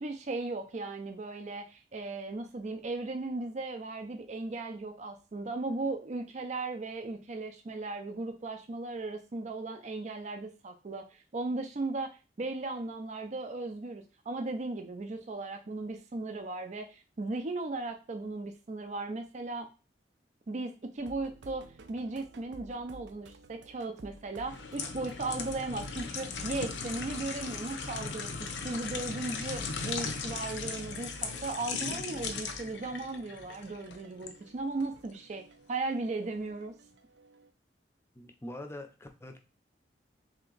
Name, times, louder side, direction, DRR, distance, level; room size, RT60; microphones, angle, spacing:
voice 1, 0.0-12.1 12.4-19.7 20.5-28.3 28.6-35.4 35.7-36.7, right 3 dB, 40° right, 6 dB, 0.4 m, -37 dB
sound 1, 21.0-37.5, right 3 dB, 90° right, 0.5 m, -55 dB
sound 2, 24.4-34.4 34.8-35.0, left 5 dB, 80° left, 0.6 m, -38 dB
voice 2, 38.1-39.4, left 1 dB, 15° left, 5 dB, 0.5 m, -43 dB
3.3 x 2.9 x 3.9 m, 0.31 s
head